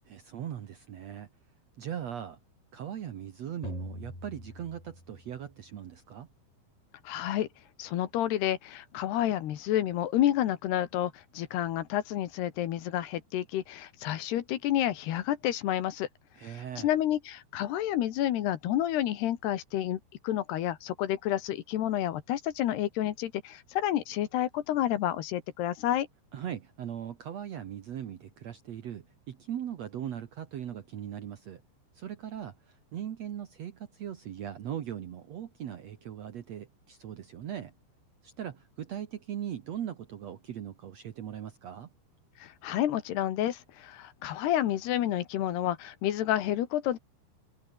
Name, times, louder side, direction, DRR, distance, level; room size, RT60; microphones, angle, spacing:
voice 1, 0.1-1.3 1.8-2.4 2.7-6.3 16.4-16.9 26.3-31.6 31.9-37.7 38.2-41.9, right 10 dB, 90° right, 1.4 m, -39 dB
sound 1, 3.6-5.6, left 2 dB, 10° left, 2.4 m, -43 dB
voice 2, 7.0-7.5 7.8-16.1 16.4-26.1 42.4-47.0, left 12 dB, 70° left, 3.4 m, -30 dB
omnidirectional pair, 5.4 m